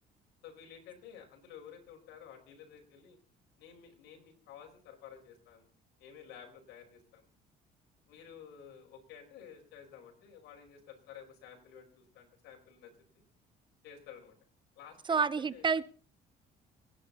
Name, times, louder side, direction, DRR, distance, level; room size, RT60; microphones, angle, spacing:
voice 1, 0.4-3.2 3.6-5.7 6.0-7.3 8.1-12.9 13.8-14.3 14.8-15.7, left 8 dB, 85° left, 5.3 m, -52 dB
voice 2, 15.1-15.8, right 5 dB, 30° right, 0.8 m, -28 dB
27.0 x 10.5 x 4.2 m
cardioid pair, 110°, 17 cm